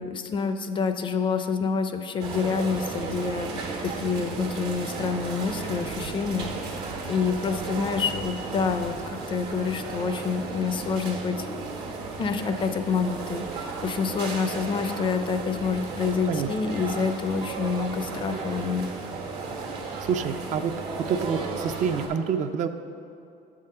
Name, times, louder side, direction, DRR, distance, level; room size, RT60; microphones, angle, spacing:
voice 1, 0.0-6.7 7.1-11.5 12.2-18.9, left 5 dB, 30° left, 8 dB, 0.4 m, -27 dB
sound 1, 2.2-22.1, right 4 dB, 80° right, 1.3 m, -34 dB
voice 2, 19.6-20.7 21.0-22.7, right 7 dB, 50° right, 8 dB, 0.4 m, -28 dB
7.7 x 3.7 x 6.6 m, 2.6 s
cardioid pair, 130°, 16 cm